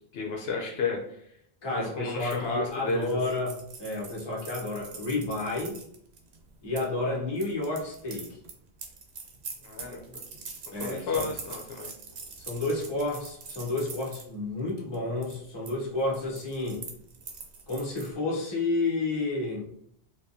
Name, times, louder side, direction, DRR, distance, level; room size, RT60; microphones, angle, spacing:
voice 1, 0.1-1.3 1.7-3.4 9.6-10.2 10.8-11.9, left 4 dB, 70° left, 0 dB, 0.8 m, -32 dB
voice 2, 1.6-5.8 6.6-8.3 10.7-11.2 12.5-16.8 17.7-19.6, left 2 dB, 25° left, -3 dB, 0.8 m, -31 dB
sound 1, 2.2-6.9 7.4-14.2 14.7-15.0 15.2-15.7 16.0-18.1, right 5 dB, 75° right, 0.9 m, -43 dB
4.3 x 2.3 x 2.6 m, 0.69 s
omnidirectional pair, 1.1 m